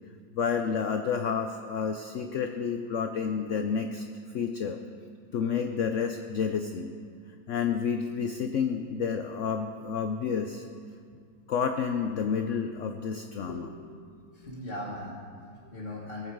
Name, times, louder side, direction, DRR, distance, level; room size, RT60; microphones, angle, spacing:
voice 1, 0.3-4.0 4.3-4.8 5.3-6.9 7.5-10.6 11.5-13.7, left 6 dB, 75° left, 7 dB, 0.6 m, -30 dB
voice 2, 13.5-13.9 14.3-16.3, left 1 dB, 35° left, -6 dB, 1.5 m, -40 dB
18.0 x 7.5 x 4.6 m, 2.2 s
omnidirectional pair, 1.9 m